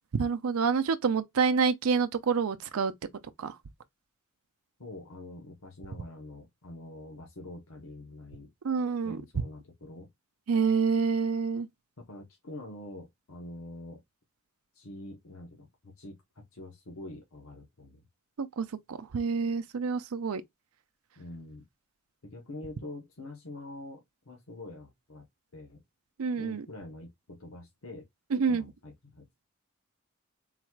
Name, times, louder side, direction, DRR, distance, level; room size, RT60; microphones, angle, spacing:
voice 1, 0.1-2.9 3.4-3.6 8.6-9.2 10.5-11.7 18.4-20.4 26.2-26.6 28.3-28.6, right 5 dB, 90° right, 0.5 m, -27 dB
voice 2, 4.8-8.5 9.0-10.1 12.0-14.0 14.7-18.0 21.2-21.6 22.2-25.8 26.3-28.1 28.5-29.3, left 2 dB, 80° left, 1.0 m, -45 dB
4.0 x 2.3 x 4.5 m
head